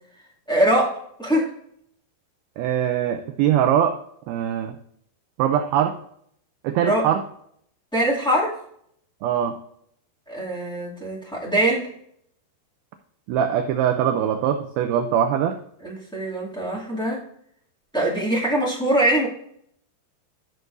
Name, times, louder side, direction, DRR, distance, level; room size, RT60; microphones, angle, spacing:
voice 1, 0.5-1.5 6.8-7.0 7.9-8.6 10.3-11.9 15.8-17.2 17.9-19.3, right 1 dB, 5° left, -7 dB, 0.7 m, -22 dB
voice 2, 2.6-3.9 4.3-4.7 5.4-6.0 6.6-7.2 9.2-9.5 13.3-15.6, right 9 dB, 80° right, 6 dB, 2.2 m, -22 dB
12.0 x 6.5 x 2.6 m, 0.68 s
omnidirectional pair, 4.9 m